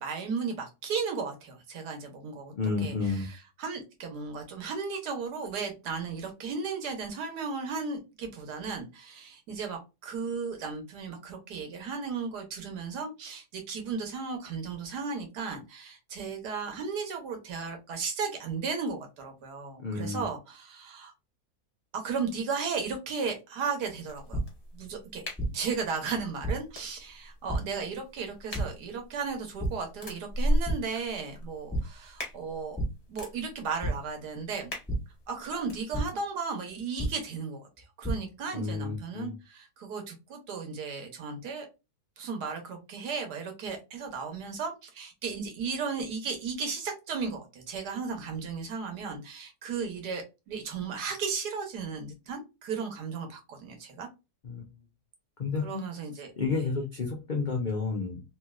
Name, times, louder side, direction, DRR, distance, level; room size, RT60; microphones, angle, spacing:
voice 1, 0.0-2.5 2.8-21.1 21.9-24.4 24.7-25.2 25.5-32.8 33.1-34.7 35.3-41.7 42.2-54.1 55.6-56.7, right 5 dB, 80° right, 1.5 m, -35 dB
voice 2, 2.6-3.3 19.8-20.2 38.5-39.3 54.4-54.7 55.4-55.8 56.4-58.2, left 4 dB, 75° left, 0.4 m, -31 dB
sound 1, 24.1-35.8, right 1 dB, 30° left, 0.9 m, -37 dB
sound 2, 24.3-24.4 25.4-25.5 26.4-26.5 27.5-27.6 28.5-28.6 29.6-29.7 30.1-30.3 30.6-30.8 31.7-31.8 32.8-32.9 33.8-33.9 34.9-35.0 35.9-36.0 37.0-37.1 37.8-38.1, right 1 dB, ahead, 1.1 m, -29 dB
3.1 x 2.9 x 2.3 m
omnidirectional pair, 1.7 m